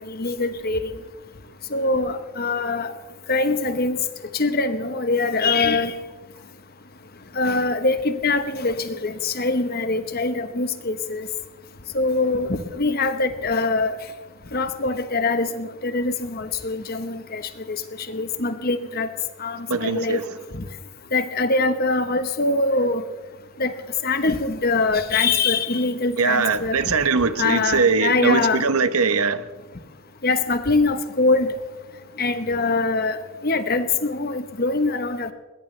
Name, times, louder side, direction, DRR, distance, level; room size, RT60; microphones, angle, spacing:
voice 1, 0.1-0.9 1.7-2.9 3.3-4.0 4.3-5.9 7.4-11.3 11.9-14.0 14.5-17.4 17.7-17.8 18.1-19.1 19.4-20.2 21.1-23.0 23.6-23.7 24.0-26.8 27.4-28.6 30.2-31.5 32.2-33.2 33.4-35.3, left 3 dB, 45° left, 1.1 m, -23 dB
voice 2, 19.7-20.2 26.2-29.4, right 4 dB, 75° right, 0.9 m, -21 dB
20.5 x 20.5 x 3.3 m
head